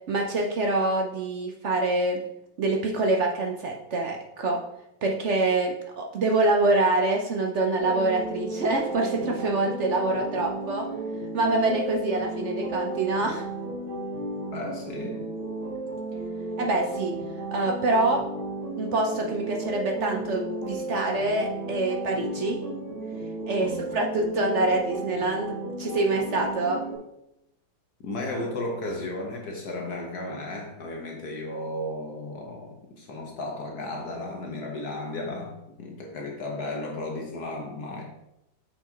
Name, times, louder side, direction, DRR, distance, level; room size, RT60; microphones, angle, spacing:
voice 1, 0.1-2.2 2.6-4.6 5.0-10.9 11.3-13.4 16.6-17.2 17.5-18.2 18.8-22.6 23.5-26.8, right 2 dB, 60° right, 2 dB, 0.7 m, -25 dB
sound 1, 7.8-27.0, right 2 dB, 40° right, 1.8 m, -34 dB
voice 2, 14.5-15.3 23.6-23.8 28.0-38.0, left 2 dB, 60° left, 1 dB, 1.4 m, -34 dB
6.3 x 5.6 x 4.4 m, 0.85 s
omnidirectional pair, 2.1 m